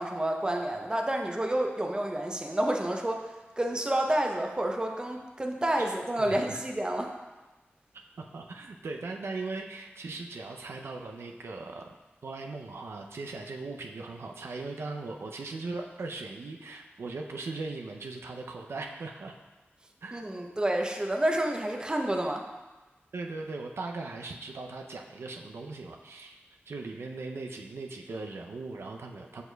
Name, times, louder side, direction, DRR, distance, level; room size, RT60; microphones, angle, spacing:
voice 1, 0.0-3.3 3.6-7.1 20.1-22.4, right 1 dB, 20° right, 2 dB, 0.6 m, -29 dB
voice 2, 5.8-6.6 8.2-11.9 12.2-19.3 20.0-20.3 23.1-29.4, right 3 dB, 80° right, 2 dB, 0.5 m, -39 dB
7.0 x 6.2 x 2.2 m, 1.2 s
wide cardioid pair, 80°, 4 cm